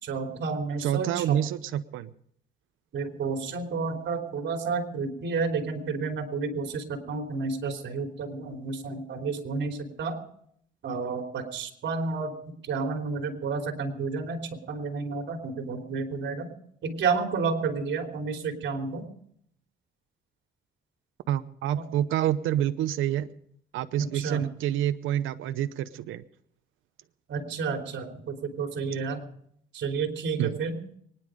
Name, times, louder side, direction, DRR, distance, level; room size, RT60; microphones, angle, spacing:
voice 1, 0.0-1.4 2.9-10.2 10.8-16.5 16.8-19.0 21.7-21.9 24.0-24.5 27.3-29.2 29.7-30.8, right 4 dB, 65° right, 3 dB, 3.4 m, -31 dB
voice 2, 0.8-2.1 21.3-23.3 23.7-26.2 30.4-30.5, right 11 dB, 90° right, 12 dB, 0.8 m, -28 dB
24.0 x 10.5 x 5.1 m, 0.65 s
cardioid pair, 90°, 20 cm